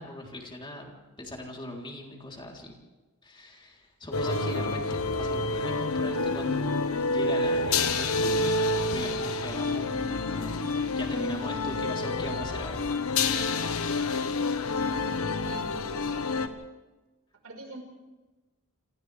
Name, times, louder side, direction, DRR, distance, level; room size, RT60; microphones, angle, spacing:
voice 1, 0.0-2.7 3.2-10.6 11.0-13.4, left 1 dB, 25° left, -1 dB, 3.6 m, -39 dB
sound 1, 4.1-16.5, left 3 dB, 85° left, 1.3 m, -28 dB
voice 2, 15.4-16.5 17.4-17.8, right 2 dB, 85° right, 2 dB, 5.0 m, -45 dB
29.0 x 27.5 x 3.5 m, 1.2 s
head